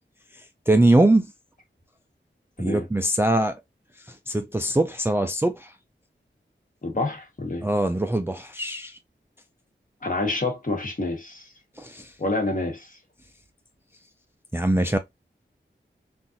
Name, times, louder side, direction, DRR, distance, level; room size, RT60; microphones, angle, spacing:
voice 1, 0.7-1.3 2.6-3.5 4.1-5.7 7.6-9.0 11.8-12.1 14.5-15.0, right 1 dB, 10° right, 0.3 m, -22 dB
voice 2, 6.8-7.7 10.0-11.5 12.2-13.0, left 2 dB, 40° left, 1.2 m, -28 dB
3.9 x 2.5 x 2.6 m
wide cardioid pair, 90°, 20 cm